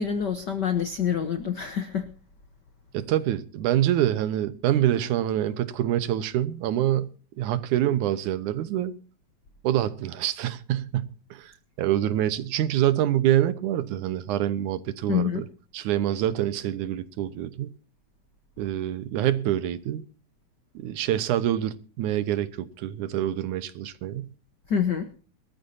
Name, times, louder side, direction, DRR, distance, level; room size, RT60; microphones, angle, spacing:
voice 1, 0.0-2.1 15.1-15.4 24.7-25.1, left 7 dB, 90° left, 0.9 m, -26 dB
voice 2, 2.9-8.9 9.6-11.5 11.8-15.4 15.7-17.7 18.6-20.0 20.7-24.3, right 12 dB, 80° right, 2.4 m, -26 dB
22.5 x 14.0 x 2.7 m
omnidirectional pair, 3.5 m